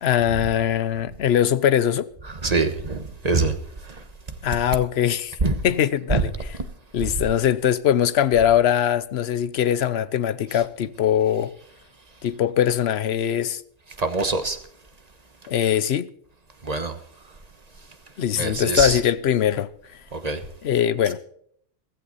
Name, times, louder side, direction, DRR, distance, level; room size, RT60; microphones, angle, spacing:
voice 1, 0.0-2.1 4.4-5.4 5.6-6.3 6.9-11.5 12.2-13.6 15.5-16.1 18.2-19.7 20.6-21.2, left 10 dB, 65° left, 1.0 m, -21 dB
voice 2, 2.4-3.5 5.4-5.6 6.1-6.3 14.0-14.6 16.6-16.9 18.4-19.0 20.1-20.4, right 3 dB, 35° right, 1.4 m, -23 dB
15.0 x 15.0 x 4.1 m
omnidirectional pair, 1.2 m